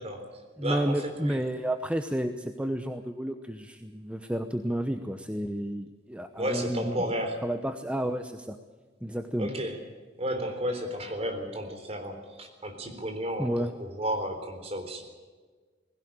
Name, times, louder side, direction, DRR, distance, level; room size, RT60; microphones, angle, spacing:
voice 1, 0.0-1.4 6.4-7.4 9.4-9.8 10.2-15.0, equal, 35° right, 5 dB, 3.8 m, -33 dB
voice 2, 0.6-7.0 7.4-8.6 9.0-9.5 13.4-13.7, right 1 dB, 5° right, 7 dB, 0.9 m, -31 dB
20.0 x 17.0 x 8.8 m, 1.5 s
head